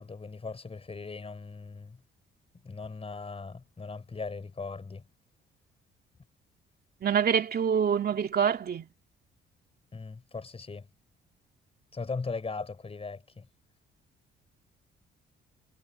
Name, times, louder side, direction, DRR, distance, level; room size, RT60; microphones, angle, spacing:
voice 1, 0.0-2.0 2.6-5.0 9.9-10.9 11.9-13.5, left 4 dB, 30° left, 6.2 m, -39 dB
voice 2, 7.0-8.9, right 7 dB, 50° right, 2.6 m, -26 dB
cardioid pair, 90°, 20 cm